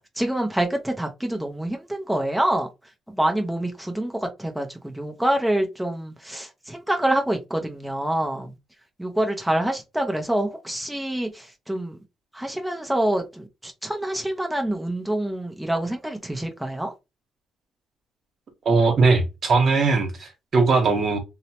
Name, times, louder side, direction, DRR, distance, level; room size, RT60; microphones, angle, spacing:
voice 1, 0.2-2.7 3.1-4.1 4.4-8.5 9.0-12.0 12.3-16.9, right 1 dB, 5° right, 0.6 m, -26 dB
voice 2, 18.6-21.2, right 4 dB, 55° right, 1.0 m, -20 dB
2.8 x 2.1 x 2.8 m
cardioid pair, 90°, 0 cm